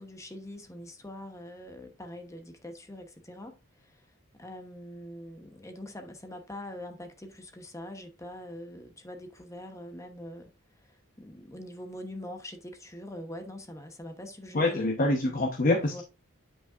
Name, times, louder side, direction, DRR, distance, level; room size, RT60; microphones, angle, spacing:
voice 1, 0.0-4.0 4.4-10.5 10.8-14.9 15.8-16.0, left 1 dB, 15° left, 0.9 m, -43 dB
voice 2, 14.5-16.0, left 2 dB, 40° left, 0.9 m, -25 dB
9.0 x 5.5 x 2.5 m
head